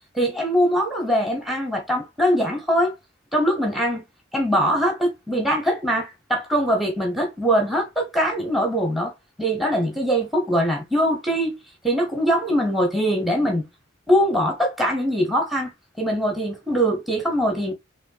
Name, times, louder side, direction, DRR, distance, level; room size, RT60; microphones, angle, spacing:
voice 1, 0.1-2.9 3.3-4.0 4.3-9.1 9.4-11.6 11.8-13.6 14.1-15.7 16.0-17.7, equal, ahead, 0.9 m, -22 dB
5.1 x 3.2 x 2.4 m
head